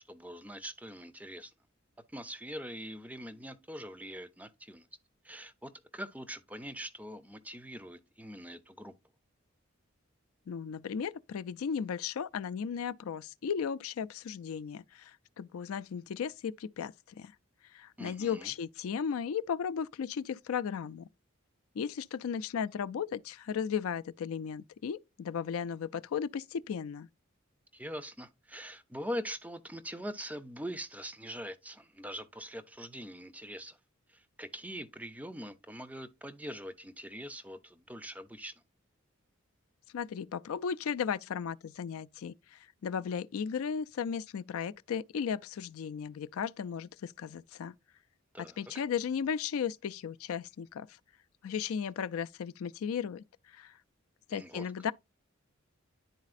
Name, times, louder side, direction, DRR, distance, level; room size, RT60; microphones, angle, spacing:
voice 1, 0.1-1.5 2.1-4.9 5.2-8.9 18.0-18.5 27.7-33.8 34.1-38.5 48.3-48.6 54.3-54.7, equal, 5° right, 0.5 m, -43 dB
voice 2, 10.5-17.3 17.7-21.1 21.8-27.1 39.9-47.7 48.4-50.9 51.4-53.2 53.5-53.7 54.3-54.9, left 7 dB, 85° left, 0.4 m, -35 dB
10.5 x 4.0 x 2.4 m
head